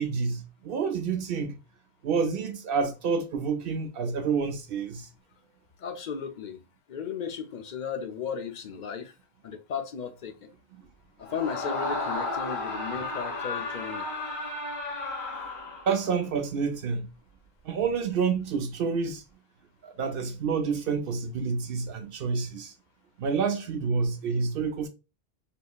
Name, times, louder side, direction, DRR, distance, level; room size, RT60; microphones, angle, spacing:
voice 1, 0.0-1.6 2.0-5.1 15.9-17.1 17.6-19.2 19.8-22.7 23.2-24.9, right 5 dB, 65° right, 0.7 m, -28 dB
voice 2, 5.8-6.6 6.9-9.1 9.4-10.3 11.2-14.1, left 6 dB, 55° left, 0.7 m, -35 dB
Screaming, 11.2-16.1, left 2 dB, 85° left, 1.5 m, -33 dB
3.6 x 2.7 x 2.3 m
omnidirectional pair, 1.1 m